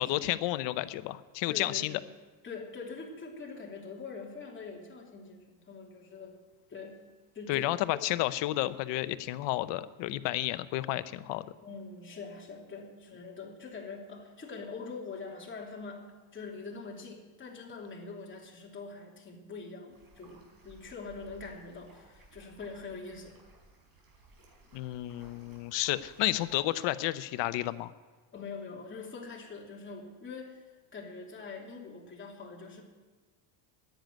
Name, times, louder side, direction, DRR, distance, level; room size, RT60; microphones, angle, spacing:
voice 1, 0.0-2.0 7.5-11.4 24.7-27.9, left 16 dB, 60° left, 14 dB, 0.8 m, -31 dB
voice 2, 1.5-2.1 2.4-6.4 6.7-7.0 7.3-8.0 11.6-23.4 28.3-32.8, left 4 dB, 25° left, -1 dB, 3.0 m, -44 dB
sound 1, 19.9-26.6, right 2 dB, 45° right, 5.2 m, -58 dB
10.5 x 9.1 x 9.3 m, 1.4 s
supercardioid pair, 115°, 49 cm